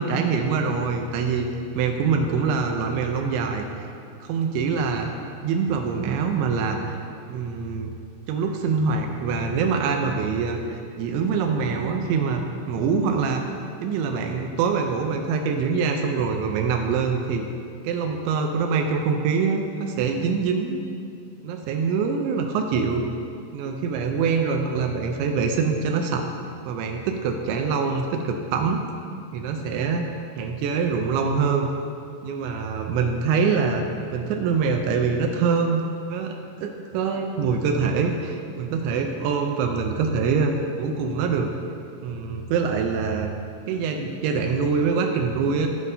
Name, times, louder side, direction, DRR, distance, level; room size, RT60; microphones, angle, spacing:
voice 1, 0.0-1.5 1.8-3.9 4.2-5.1 5.4-7.0 7.3-7.9 8.3-13.4 13.8-17.5 17.8-20.8 21.4-23.0 23.5-26.2 26.7-28.8 29.3-30.1 30.4-31.7 32.2-33.8 34.1-35.8 36.1-41.5 42.0-43.3 43.7-45.7, right 5 dB, 85° right, 4 dB, 2.8 m, -24 dB
14.0 x 7.3 x 2.7 m, 2.4 s
omnidirectional pair, 5.4 m